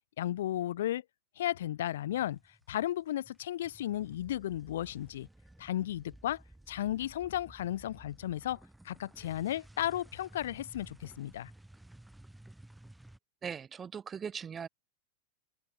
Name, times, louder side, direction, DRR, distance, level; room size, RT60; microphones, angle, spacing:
voice 1, 0.2-1.0 1.4-2.4 2.7-5.3 5.6-6.4 6.7-8.6 8.8-11.5, left 12 dB, 60° left, 0.5 m, -34 dB
sound 1, 2.1-2.9 3.1-13.2, right 1 dB, 5° right, 1.5 m, -55 dB
voice 2, 13.4-14.7, right 7 dB, 20° right, 0.8 m, -39 dB
open air
figure-of-eight pair, 90°, 0 cm